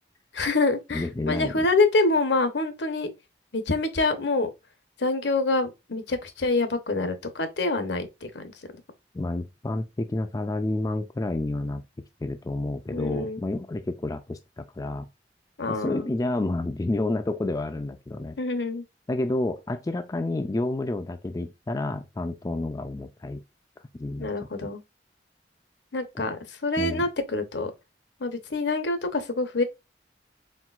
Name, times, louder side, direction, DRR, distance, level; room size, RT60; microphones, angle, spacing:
voice 1, 0.3-3.1 3.5-4.5 5.0-8.4 12.9-13.4 15.6-16.1 18.4-18.8 24.2-24.8 25.9-26.4 26.6-27.7 28.2-29.6, left 3 dB, 75° left, 0.9 m, -26 dB
voice 2, 0.9-1.7 9.1-11.8 12.2-15.0 15.7-18.4 19.1-23.4 24.0-24.3 24.6-24.7 26.8-27.0, left 2 dB, 20° left, 0.3 m, -29 dB
4.5 x 3.8 x 2.4 m
head